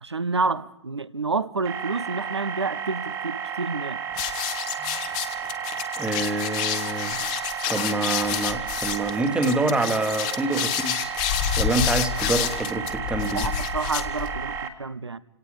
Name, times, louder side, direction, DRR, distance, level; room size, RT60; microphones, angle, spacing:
voice 1, 0.0-4.0 13.3-15.2, right 4 dB, 75° right, 0.9 m, -29 dB
sound 1, 1.6-14.7, right 7 dB, 25° right, 1.6 m, -33 dB
sound 2, 4.1-14.6, left 10 dB, 30° left, 1.2 m, -29 dB
voice 2, 6.0-7.2 7.7-11.1 11.6-13.5, right 2 dB, 5° right, 1.5 m, -26 dB
29.5 x 18.0 x 5.0 m
figure-of-eight pair, 115°, 14 cm